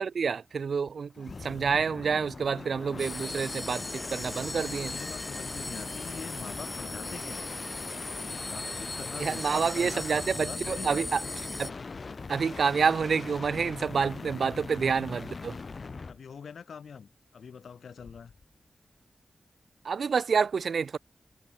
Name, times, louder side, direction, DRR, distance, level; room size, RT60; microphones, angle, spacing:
voice 1, 0.0-4.9 9.2-11.2 11.6-11.7 12.3-15.5 19.8-21.0, right 6 dB, 75° right, 1.0 m, -28 dB
sound 1, 1.2-16.2 18.0-18.4, left 4 dB, 50° left, 7.7 m, -41 dB
sound 2, 3.0-11.7, left 2 dB, 20° left, 2.8 m, -39 dB
voice 2, 4.6-7.5 8.2-11.1 15.9-18.3, left 6 dB, 85° left, 3.5 m, -44 dB
wide cardioid pair, 90°, 0 cm